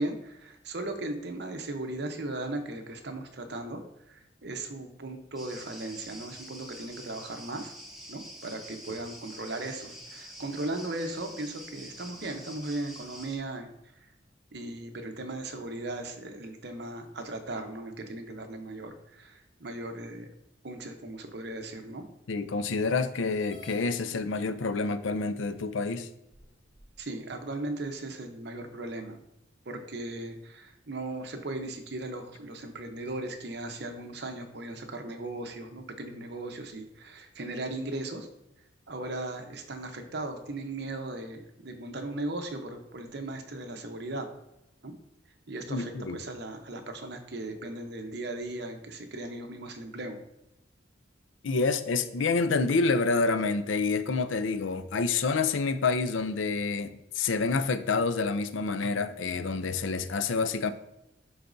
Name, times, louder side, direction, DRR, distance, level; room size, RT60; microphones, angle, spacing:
voice 1, 0.0-3.8 4.1-7.7 8.1-13.7 14.5-20.3 20.6-22.0 27.0-29.2 29.7-38.3 38.9-44.3 44.8-44.9 45.5-50.2, right 2 dB, 60° right, 0.9 m, -37 dB
sound 1, 5.4-13.4, equal, ahead, 1.1 m, -46 dB
voice 2, 22.3-26.1 45.7-46.2 51.4-60.7, left 4 dB, 85° left, 0.5 m, -28 dB
sound 2, 23.5-23.9 24.9-25.0 25.6-25.7 26.3-27.0, equal, 65° left, 1.6 m, -51 dB
11.0 x 4.1 x 2.6 m
head